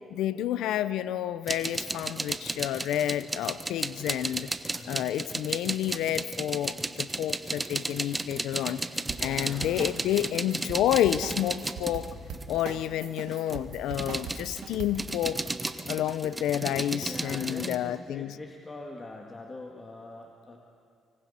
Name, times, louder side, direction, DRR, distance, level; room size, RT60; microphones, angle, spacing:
voice 1, 0.1-4.5 4.9-8.8 9.2-12.1 12.5-15.4 15.9-18.3, left 12 dB, 90° left, 15 dB, 0.5 m, -29 dB
sound 1, 1.5-12.7 13.2-17.8, right 2 dB, 20° right, 1.1 m, -34 dB
voice 2, 4.7-5.1 9.0-10.0 12.1-12.6 16.9-20.6, left 2 dB, 30° left, 0 dB, 2.0 m, -43 dB
sound 2, 9.1-15.2, right 7 dB, 75° right, 1.8 m, -40 dB
25.0 x 24.5 x 4.3 m, 2.4 s
cardioid pair, 90°, 0 cm